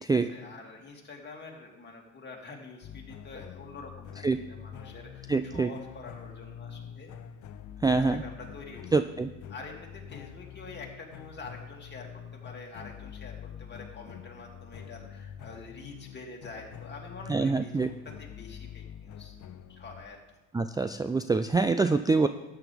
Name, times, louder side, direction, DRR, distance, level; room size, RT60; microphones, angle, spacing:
voice 1, 0.1-7.1 7.9-8.9 9.5-19.3 19.7-20.2, left 3 dB, 35° left, -1 dB, 2.7 m, -46 dB
sound 1, 2.8-20.1, left 9 dB, 75° left, 0.8 m, -45 dB
voice 2, 5.3-5.7 7.8-8.2 8.9-9.3 17.3-17.9 20.5-22.3, right 4 dB, 15° right, 9 dB, 0.4 m, -25 dB
13.0 x 9.2 x 3.5 m, 1.1 s
cardioid pair, 90°, 30 cm